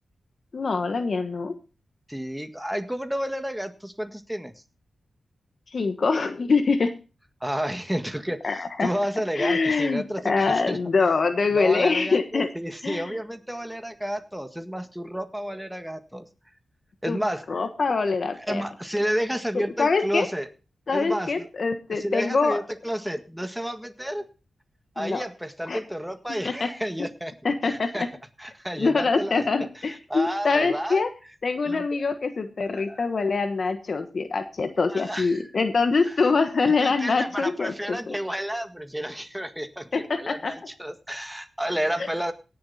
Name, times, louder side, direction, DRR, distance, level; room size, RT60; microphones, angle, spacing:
voice 1, 0.5-1.5 5.7-6.9 8.4-8.9 9.3-12.5 12.8-13.2 17.1-17.2 17.5-18.6 19.5-20.3 20.9-22.6 25.0-25.2 25.7-25.8 26.4-26.7 27.4-28.1 28.8-31.1 31.4-38.2 39.9-40.5 42.0-42.1, left 4 dB, 55° left, 8 dB, 1.3 m, -24 dB
voice 2, 2.1-4.5 7.4-8.4 8.8-10.8 11.5-16.3 17.0-17.4 18.4-20.5 20.9-21.5 21.9-24.3 25.0-27.3 27.7-28.1 28.4-29.4 29.9-31.0 31.6-32.0 32.7-33.1 34.9-35.4 36.8-42.3, equal, 5° right, 8 dB, 1.7 m, -31 dB
17.5 x 7.1 x 4.2 m, 0.32 s
cardioid pair, 65°, 0 cm